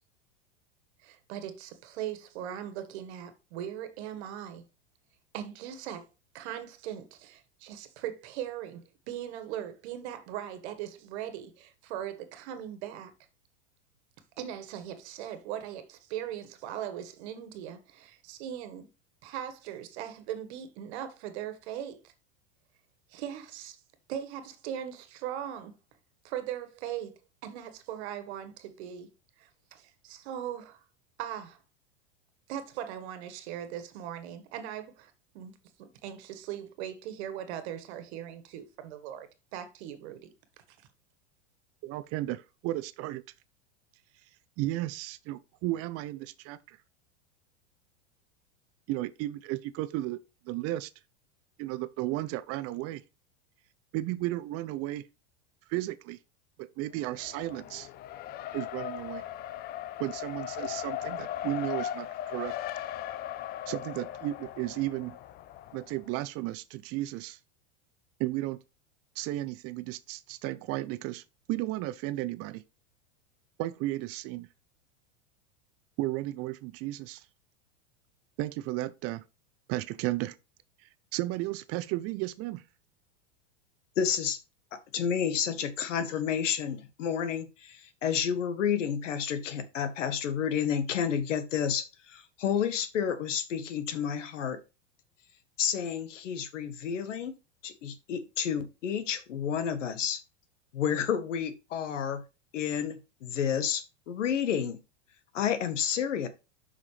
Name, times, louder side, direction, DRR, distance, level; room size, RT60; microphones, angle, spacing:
voice 1, 1.0-4.6 5.3-6.1 6.3-13.1 14.4-18.9 19.2-22.0 23.1-23.8 24.1-25.7 26.2-29.1 29.4-30.8 31.2-31.6 32.5-40.3, right 10 dB, 65° right, 1.7 m, -39 dB
voice 2, 41.8-43.2 44.6-46.8 48.9-50.2 50.5-50.9 51.6-53.0 53.9-55.0 55.7-56.2 56.6-57.9 58.5-59.2 60.0-62.5 63.7-65.2 65.7-67.4 68.2-68.6 69.2-71.2 71.5-72.6 73.6-74.5 76.0-77.2 78.4-79.2 79.7-80.4 81.1-82.6, right 16 dB, 40° right, 0.6 m, -34 dB
Race car auto racing, 57.0-66.1, left 12 dB, 30° left, 0.4 m, -38 dB
voice 3, 84.0-84.4 84.7-94.6 95.6-97.3 97.6-100.2 100.7-102.2 102.5-104.8 105.3-106.3, left 8 dB, 85° left, 1.5 m, -30 dB
7.2 x 5.8 x 3.3 m
hypercardioid pair, 120°, 36 cm